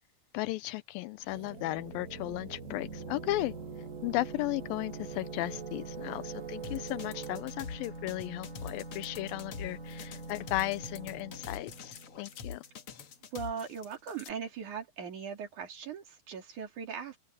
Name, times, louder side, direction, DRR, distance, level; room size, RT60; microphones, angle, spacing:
voice 1, 0.3-3.5 4.0-12.6, left 18 dB, 85° left, 2.4 m, -35 dB
sound 1, 1.3-7.4, right 13 dB, 90° right, 3.2 m, -45 dB
sound 2, 1.5-13.0, right 1 dB, 20° right, 7.6 m, -45 dB
sound 3, 6.6-14.3, left 6 dB, 55° left, 1.8 m, -44 dB
voice 2, 13.3-17.2, right 6 dB, 60° right, 4.3 m, -39 dB
open air
omnidirectional pair, 4.2 m